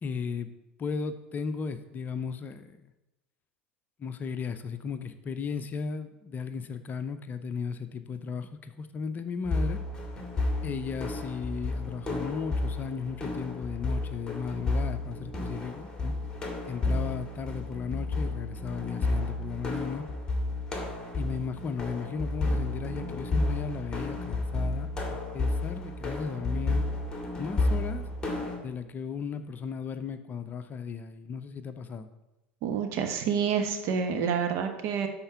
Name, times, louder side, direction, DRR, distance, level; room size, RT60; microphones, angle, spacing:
voice 1, 0.0-0.5 0.8-2.8 4.0-9.8 10.6-16.1 16.6-20.1 21.1-26.8 27.4-28.1 28.6-32.1, left 5 dB, 30° left, 10 dB, 0.7 m, -35 dB
sound 1, 9.4-28.6, left 2 dB, 15° left, 2.2 m, -31 dB
voice 2, 32.6-35.1, right 7 dB, 50° right, 5 dB, 1.5 m, -28 dB
11.5 x 4.5 x 6.9 m, 0.96 s
hypercardioid pair, 80°, 6 cm